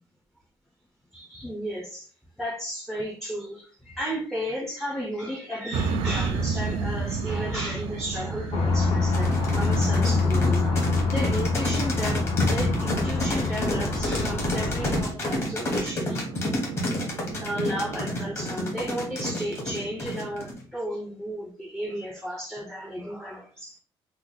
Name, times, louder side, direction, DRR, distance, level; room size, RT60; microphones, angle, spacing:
voice 1, 1.1-2.1 2.4-10.8 11.1-16.2 17.2-23.8, equal, ahead, 0 dB, 0.4 m, -34 dB
sound 1, 5.7-20.5, right 4 dB, 85° right, 0.4 m, -34 dB
sound 2, 8.5-15.0, left 3 dB, 60° left, 0.8 m, -25 dB
sound 3, 9.1-20.6, left 1 dB, 30° left, 0.9 m, -30 dB
3.0 x 2.1 x 3.6 m, 0.41 s
cardioid pair, 170°, 9 cm